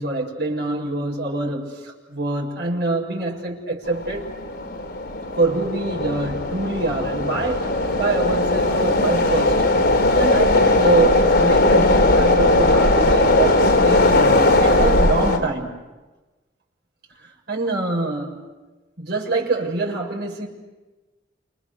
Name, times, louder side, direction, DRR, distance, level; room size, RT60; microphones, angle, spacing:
voice 1, 0.0-4.3 5.4-7.7 8.0-9.6 10.2-15.7 17.5-18.3 19.0-20.5, right 2 dB, 60° right, 0 dB, 7.3 m, -25 dB
sound 1, 3.8-15.4, left 2 dB, 60° left, 4.0 m, -18 dB
30.0 x 28.0 x 6.8 m, 1.1 s
head